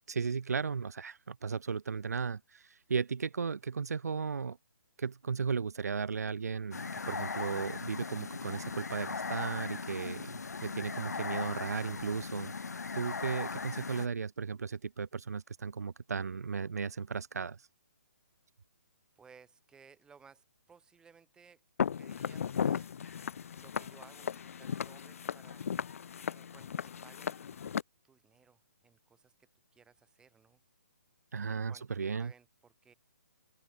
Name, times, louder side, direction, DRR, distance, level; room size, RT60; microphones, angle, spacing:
voice 1, 0.1-4.6 5.0-12.5 12.9-17.6 31.3-32.3, right 5 dB, 75° right, 0.8 m, -35 dB
sound 1, 6.7-14.1, left 4 dB, 80° left, 1.1 m, -39 dB
voice 2, 13.6-13.9 19.2-21.6 22.0-22.9 23.6-25.7 26.3-27.8 28.0-30.6 31.5-31.9 32.2-32.9, right 6 dB, 10° right, 6.2 m, -60 dB
Walk footsteps, 21.8-27.8, left 7 dB, 60° left, 1.8 m, -36 dB
open air
figure-of-eight pair, 140°, 9 cm